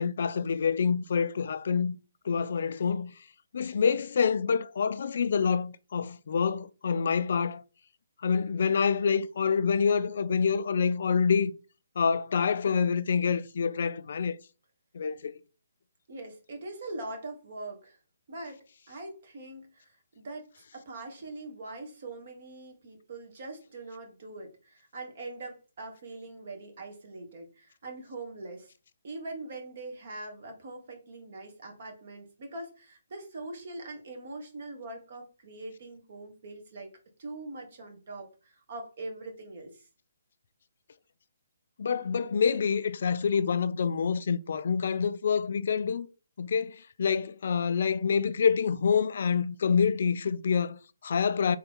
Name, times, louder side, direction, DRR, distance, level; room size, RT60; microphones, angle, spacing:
voice 1, 0.0-2.0 2.2-3.1 3.5-7.6 8.2-11.5 12.0-14.3 14.9-15.4 41.8-46.1 46.4-51.6, left 6 dB, 60° left, 0.3 m, -27 dB
voice 2, 16.1-18.0 18.3-28.7 29.0-36.9 37.2-39.9, right 2 dB, 55° right, 1.5 m, -42 dB
3.9 x 3.1 x 3.7 m
figure-of-eight pair, 140°, 0 cm